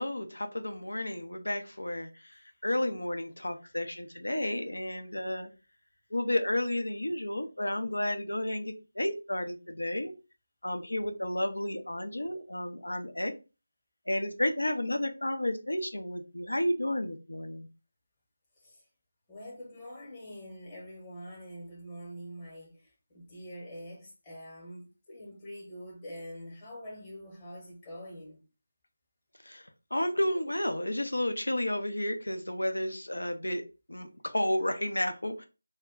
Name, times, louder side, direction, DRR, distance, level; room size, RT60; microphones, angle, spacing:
voice 1, 0.0-5.5 6.1-10.1 10.6-13.3 14.1-17.7 29.4-33.6 33.9-35.4, left 1 dB, 90° left, 0.6 m, -32 dB
voice 2, 19.3-28.4, equal, 20° left, 0.9 m, -45 dB
2.2 x 2.1 x 3.5 m
figure-of-eight pair, 165°, 0 cm